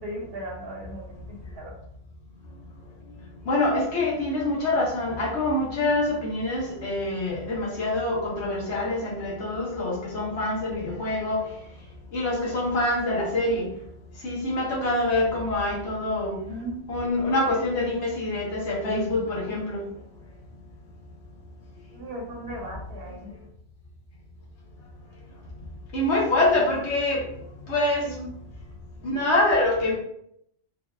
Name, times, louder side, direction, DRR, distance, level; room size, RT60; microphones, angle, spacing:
voice 1, 0.0-1.7 16.5-16.8 21.9-23.3 28.0-28.3, right 1 dB, 55° right, 0 dB, 1.0 m, -37 dB
voice 2, 3.5-11.5 12.1-13.6 14.2-16.4 16.9-19.8 25.9-27.2 27.7-28.0 29.0-29.9, left 2 dB, 70° left, -4 dB, 1.3 m, -25 dB
3.9 x 2.7 x 2.4 m, 0.72 s
omnidirectional pair, 1.2 m